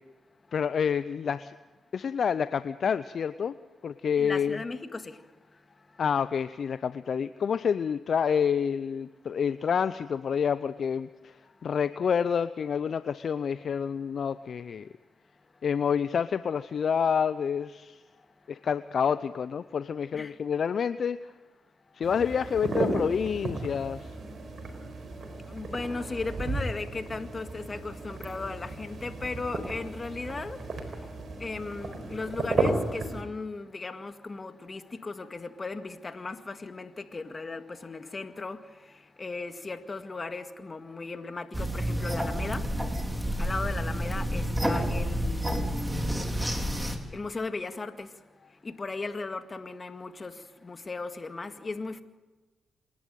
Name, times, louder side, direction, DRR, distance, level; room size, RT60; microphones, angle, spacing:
voice 1, 0.5-1.5 1.9-3.5 3.8-4.6 6.0-11.4 11.6-14.9 15.6-18.0 18.5-21.3 21.9-24.1, left 7 dB, 60° left, 13 dB, 0.6 m, -28 dB
voice 2, 4.2-5.2 20.1-20.3 25.5-30.6 31.4-38.6 39.2-42.7 43.4-46.0 47.1-48.1 48.6-50.4 50.6-52.0, left 3 dB, 40° left, 8 dB, 2.0 m, -36 dB
sound 1, 22.0-33.2, right 2 dB, 55° right, 4.3 m, -34 dB
sound 2, 41.5-47.0, equal, 10° right, 3.7 m, -29 dB
27.5 x 11.0 x 9.3 m, 1.2 s
supercardioid pair, 45°, 0 cm